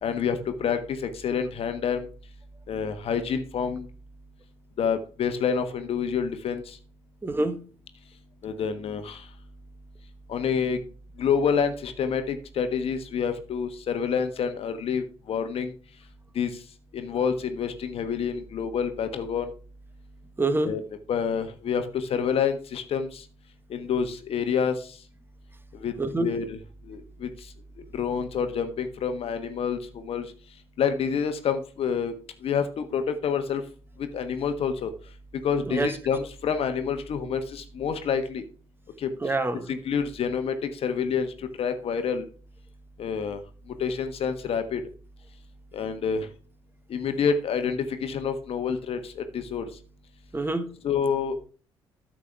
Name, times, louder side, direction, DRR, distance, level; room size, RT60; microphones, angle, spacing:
voice 1, 0.0-2.0 2.7-3.9 4.8-6.8 8.4-9.2 10.3-10.8 11.2-15.7 16.3-16.5 16.9-19.5 20.6-20.8 21.1-23.2 23.7-24.9 25.7-25.9 26.2-26.6 26.9-27.3 27.9-29.8 30.0-30.3 30.8-32.1 32.4-33.6 34.0-34.9 35.4-38.4 39.0-39.1 39.7-42.3 43.0-43.4 43.8-44.8 45.7-46.3 46.9-49.7 50.8-51.5, left 6 dB, 45° left, 8 dB, 1.4 m, -28 dB
voice 2, 7.2-7.6 20.4-20.7 26.0-26.3 35.7-35.9 39.2-39.6 50.3-50.7, right 2 dB, 15° right, 9 dB, 1.5 m, -26 dB
13.0 x 7.6 x 3.4 m, 0.38 s
figure-of-eight pair, 50°, 14 cm